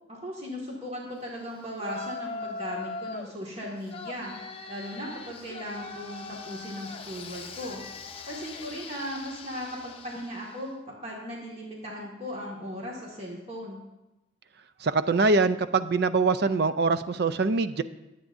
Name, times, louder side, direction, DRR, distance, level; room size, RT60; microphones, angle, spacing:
voice 1, 0.1-4.3 4.7-7.8 8.3-10.8 11.0-13.8, equal, 30° right, -3 dB, 1.9 m, -37 dB
Yell, 1.8-3.3 3.9-10.6, left 4 dB, 30° left, 0.7 m, -40 dB
voice 2, 14.8-17.8, right 3 dB, 55° right, 13 dB, 0.5 m, -23 dB
22.5 x 8.3 x 2.6 m, 1.0 s
head